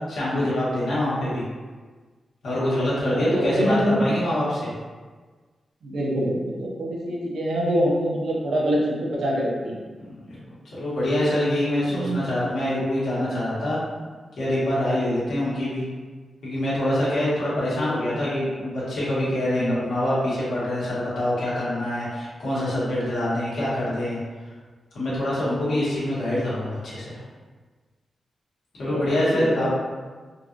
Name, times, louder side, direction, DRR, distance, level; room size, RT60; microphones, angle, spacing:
voice 1, 0.1-1.4 2.4-4.7 10.0-10.4 10.8-13.8 14.4-15.9 16.4-24.2 24.9-27.2 28.8-29.7, left 1 dB, 85° left, -9 dB, 1.5 m, -25 dB
voice 2, 3.1-4.0 5.8-9.8 11.9-12.2 19.5-19.7 28.9-29.0 29.3-29.7, equal, 85° right, -4 dB, 0.8 m, -25 dB
3.7 x 3.0 x 2.5 m, 1.4 s
cardioid pair, 60°, 0 cm